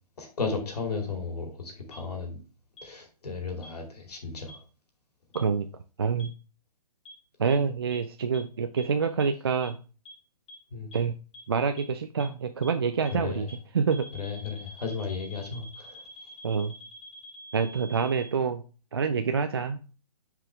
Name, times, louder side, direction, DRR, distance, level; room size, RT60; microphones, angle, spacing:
voice 1, 0.2-2.4 2.8-4.6 10.7-10.9 13.1-13.5 14.1-16.0, left 4 dB, 75° left, 2.5 m, -34 dB
sound 1, 1.9-2.0 2.8-2.9 3.6-3.7 4.5-4.6 5.3-5.4 6.2-6.3 7.1-7.2 7.5-7.6 7.9-8.0 8.3-8.4 8.8-8.9 9.2-9.3 9.6-9.7 10.1-10.2 10.5-10.6 10.9-11.0 11.3-11.4 11.8-11.9 12.2-12.3 12.6-12.7 13.1-13.2 13.5-13.6 13.9-18.3, equal, 50° left, 2.2 m, -46 dB
voice 2, 5.3-5.7 6.0-6.3 7.4-9.8 10.9-11.1 11.5-14.1 16.4-16.7 17.5-18.6 18.9-19.8, right 5 dB, 40° right, 0.4 m, -27 dB
6.1 x 4.9 x 3.3 m
hypercardioid pair, 175°, 20 cm